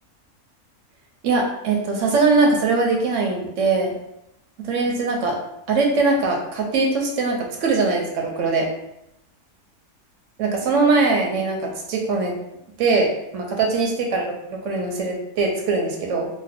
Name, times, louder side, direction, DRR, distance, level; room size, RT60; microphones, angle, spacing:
voice 1, 1.2-3.9 4.6-5.4 5.7-8.7 10.4-12.3 12.8-16.3, right 3 dB, 65° right, 0 dB, 0.8 m, -21 dB
2.6 x 2.1 x 3.5 m, 0.82 s
omnidirectional pair, 1.6 m